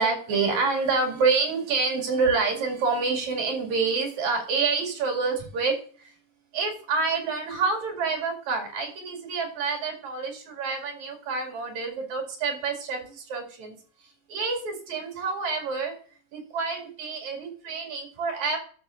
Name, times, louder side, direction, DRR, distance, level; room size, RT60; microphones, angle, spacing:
voice 1, 0.0-6.1 6.5-13.8 14.3-15.9 16.3-18.6, right 4 dB, 70° right, 1 dB, 3.6 m, -27 dB
12.0 x 6.9 x 2.5 m, 0.43 s
omnidirectional pair, 3.4 m